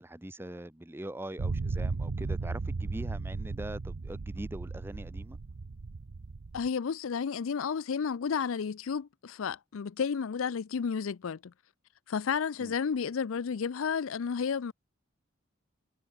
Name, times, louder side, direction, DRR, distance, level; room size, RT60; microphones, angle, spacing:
voice 1, 0.0-5.4 12.6-12.7, right 1 dB, 10° right, 0.8 m, -42 dB
sound 1, 1.4-6.7, right 3 dB, 85° right, 0.7 m, -35 dB
voice 2, 6.5-11.5 12.1-14.7, left 6 dB, 75° left, 0.5 m, -32 dB
head